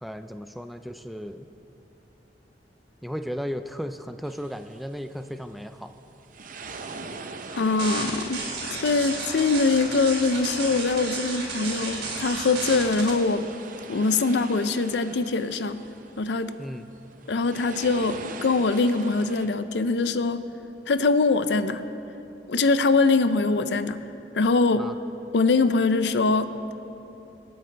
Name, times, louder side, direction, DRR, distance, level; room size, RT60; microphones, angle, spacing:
voice 1, 0.0-1.5 3.0-5.9 16.6-16.9 24.7-25.0, equal, ahead, 8 dB, 0.3 m, -35 dB
sound 1, 4.2-19.5, right 4 dB, 50° right, 0.6 m, -44 dB
voice 2, 7.5-8.4 8.7-13.5 13.9-15.8 16.2-16.6 17.3-20.5 20.9-21.8 22.5-24.0 24.3-24.9 25.3-26.5, left 3 dB, 75° left, 12 dB, 0.5 m, -23 dB
sound 2, 7.8-13.1, right 3 dB, 85° right, 3.1 m, -32 dB
26.0 x 8.9 x 3.3 m, 2.9 s
head